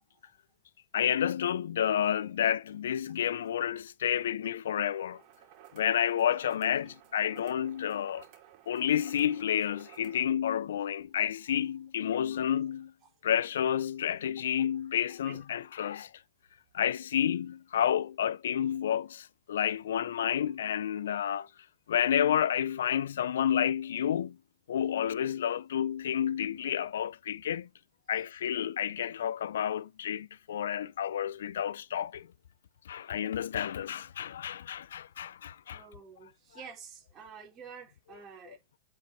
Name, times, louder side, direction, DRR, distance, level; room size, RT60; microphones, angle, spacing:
voice 1, 0.9-5.2 5.7-8.2 8.7-12.9 13.2-16.1 16.7-21.5 21.9-24.4 24.7-27.7 28.1-32.3 32.9-35.8, left 9 dB, 85° left, 0.4 m, -30 dB
sound 1, 5.1-10.3, right 11 dB, 45° right, 2.8 m, -56 dB
voice 2, 15.1-15.4 28.1-28.3 31.3-31.4 33.0-33.1 35.7-38.6, right 6 dB, 25° right, 4.5 m, -50 dB
8.4 x 5.3 x 3.1 m
hypercardioid pair, 135°, 0 cm